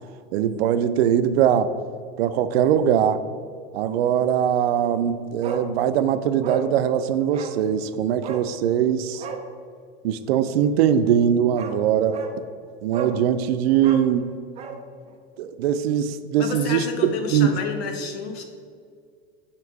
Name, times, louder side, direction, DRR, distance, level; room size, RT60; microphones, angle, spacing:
voice 1, 0.3-1.7 2.2-3.2 3.7-9.2 10.0-12.2 12.8-14.3 15.4-16.9 17.3-17.5, right 9 dB, 85° right, 11 dB, 0.5 m, -21 dB
Bark, 5.4-5.7 6.0-6.1 6.4-6.7 7.3-7.6 8.2-8.5 9.1-9.5 11.1-11.2 11.6-11.8 12.1-12.4 12.9-13.2 13.8-14.8 15.1-15.2, right 6 dB, 20° right, 0.4 m, -33 dB
voice 2, 16.4-18.4, left 4 dB, 80° left, 5 dB, 1.0 m, -30 dB
7.1 x 3.0 x 4.6 m, 2.1 s
supercardioid pair, 130°, 30 cm